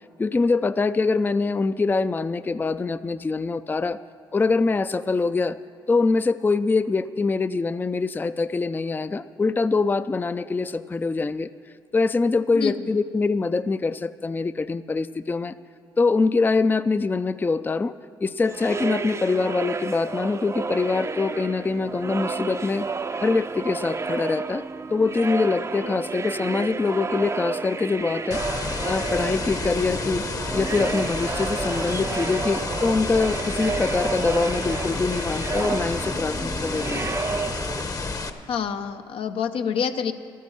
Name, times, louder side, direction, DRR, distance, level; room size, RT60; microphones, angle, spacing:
voice 1, 0.2-4.0 4.3-5.6 5.9-11.5 11.9-15.6 16.0-17.9 18.2-22.9 23.2-24.6 24.9-28.4 28.8-30.2 30.5-37.1 37.4-37.5, left 4 dB, 20° left, 13 dB, 0.4 m, -24 dB
sound 1, 18.4-37.8, right 4 dB, 30° right, 0.5 m, -31 dB
sound 2, 28.3-38.3, left 3 dB, 40° left, 0.9 m, -30 dB
voice 2, 38.5-40.1, left 7 dB, 75° left, 8 dB, 0.6 m, -27 dB
13.0 x 9.3 x 7.1 m, 2.5 s
supercardioid pair, 55°, 9 cm